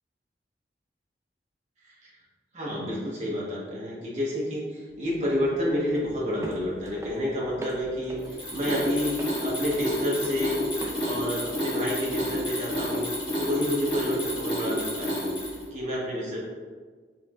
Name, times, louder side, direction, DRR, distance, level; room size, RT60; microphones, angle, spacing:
voice 1, 1.8-2.2 2.5-10.6 11.0-13.1 13.4-16.4, left 1 dB, 40° right, -5 dB, 1.0 m, -30 dB
sound 1, 4.9-15.8, right 1 dB, 15° right, 0.4 m, -44 dB
Mechanisms, 8.2-15.7, equal, 25° left, 1.1 m, -30 dB
4.4 x 3.4 x 2.4 m, 1.5 s
head